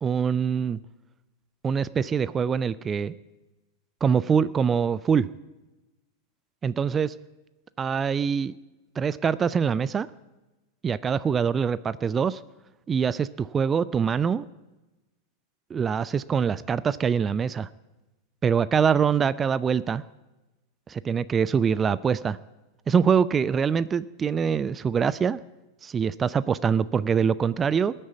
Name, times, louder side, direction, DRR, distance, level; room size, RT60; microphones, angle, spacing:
voice 1, 0.0-0.8 1.6-3.1 4.0-5.3 6.6-7.1 7.8-8.5 9.0-10.1 10.8-12.4 12.9-14.4 15.7-17.7 18.4-20.0 21.0-22.4 22.9-25.4 25.8-27.9, right 6 dB, 20° right, 18 dB, 0.5 m, -24 dB
19.5 x 8.9 x 8.1 m, 1.1 s
figure-of-eight pair, 90°, 0 cm